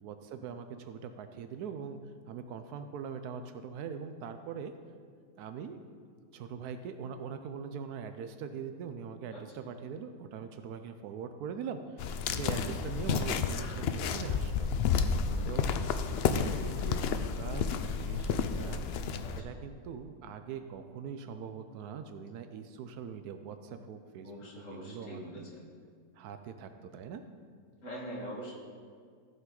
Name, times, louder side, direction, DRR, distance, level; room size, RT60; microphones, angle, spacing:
voice 1, 0.0-2.0 2.3-4.7 5.4-5.8 6.3-14.7 15.5-15.7 16.2-18.8 19.4-24.3 24.7-25.2 26.2-27.2, right 6 dB, 85° right, 8 dB, 1.1 m, -42 dB
sound 1, 12.0-19.4, left 6 dB, 85° left, 0.5 m, -31 dB
voice 2, 15.2-15.7 19.2-19.6 24.2-25.6 27.8-28.5, equal, 55° left, -3 dB, 2.1 m, -44 dB
14.5 x 5.5 x 3.8 m, 2.1 s
omnidirectional pair, 1.6 m